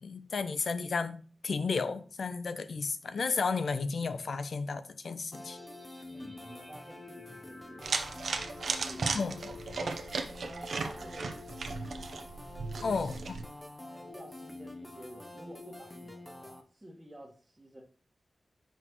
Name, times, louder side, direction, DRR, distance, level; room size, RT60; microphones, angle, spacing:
voice 1, 0.0-5.6 9.1-9.4 12.8-13.1, left 4 dB, 65° left, 0.6 m, -33 dB
sound 1, 5.3-16.6, left 2 dB, 10° left, 0.7 m, -47 dB
voice 2, 6.1-9.1 9.8-10.1 10.3-12.3 12.7-13.0 13.9-17.8, right 1 dB, 10° right, 1.5 m, -51 dB
sound 2, 7.8-13.4, right 4 dB, 70° right, 0.8 m, -36 dB
5.9 x 5.7 x 3.0 m
wide cardioid pair, 105°, 0 cm